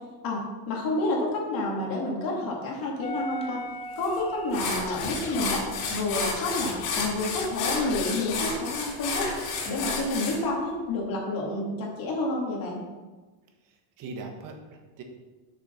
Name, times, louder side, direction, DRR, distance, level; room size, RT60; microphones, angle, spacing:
voice 1, 0.2-3.6 4.0-5.6 5.9-9.2 9.6-12.8, left 2 dB, 45° left, -2 dB, 2.5 m, -29 dB
sound 1, 3.0-8.6 9.0-9.8, right 1 dB, 15° left, 0.4 m, -41 dB
sound 2, 4.0-4.1 4.5-10.4, left 4 dB, 85° left, 2.8 m, -31 dB
Scratching (performance technique), 4.9-5.5 5.9-6.0 6.4-7.5 7.7-8.4, left 13 dB, 65° left, 0.7 m, -41 dB
voice 2, 13.6-15.0, right 3 dB, 40° right, 3 dB, 1.4 m, -41 dB
6.9 x 6.5 x 5.7 m, 1.3 s
cardioid pair, 165°, 47 cm